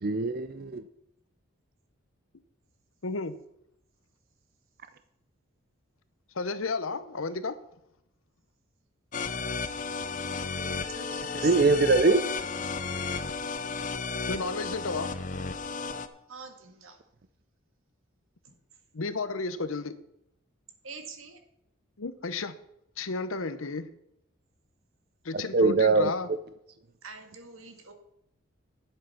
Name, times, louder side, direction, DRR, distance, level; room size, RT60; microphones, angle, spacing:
voice 1, 0.0-0.8 11.4-12.2 25.3-26.1, right 3 dB, 45° right, 11 dB, 0.5 m, -22 dB
voice 2, 3.0-3.4 6.3-7.6 14.3-15.1 18.9-19.9 22.0-22.6 23.0-23.9 25.2-26.3, left 3 dB, 80° left, 12 dB, 0.9 m, -32 dB
sound 1, 9.1-16.1, left 4 dB, 35° left, 0.7 m, -33 dB
voice 3, 10.6-11.7 16.3-17.0 18.4-18.6 20.8-21.4 27.0-27.9, right 5 dB, 75° right, 5 dB, 1.8 m, -45 dB
10.5 x 7.9 x 5.8 m, 0.79 s
head